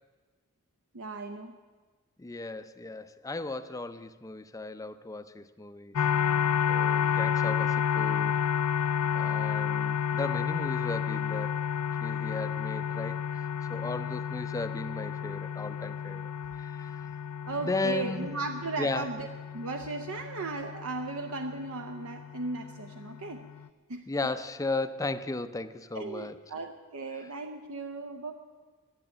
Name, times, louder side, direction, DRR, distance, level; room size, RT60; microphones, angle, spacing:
voice 1, 0.9-1.5 13.7-13.8 17.4-19.3 19.5-23.4 23.9-24.1 25.9-28.3, right 3 dB, 70° right, 5 dB, 0.7 m, -36 dB
voice 2, 2.2-6.0 6.7-8.4 9.1-11.6 12.0-16.3 16.6-16.9 17.6-18.3 18.8-19.1 24.1-26.4, left 2 dB, 15° left, 11 dB, 0.5 m, -35 dB
sound 1, 6.0-23.7, left 8 dB, 90° left, 0.4 m, -31 dB
11.5 x 11.0 x 8.9 m, 1.4 s
head